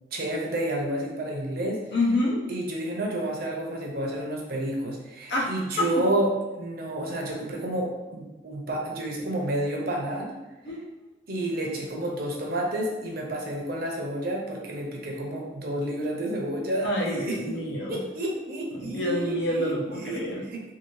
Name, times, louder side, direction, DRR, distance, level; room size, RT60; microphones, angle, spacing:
voice 1, 0.1-1.8 2.5-10.3 11.3-17.4 17.9-20.6, right 1 dB, 55° right, -1 dB, 0.7 m, -30 dB
voice 2, 1.9-2.4 5.3-5.5 5.8-5.9 10.6-10.8 16.8-18.0 18.7-20.4, left 1 dB, 70° left, -4 dB, 0.8 m, -27 dB
2.7 x 2.6 x 3.1 m, 1.1 s
head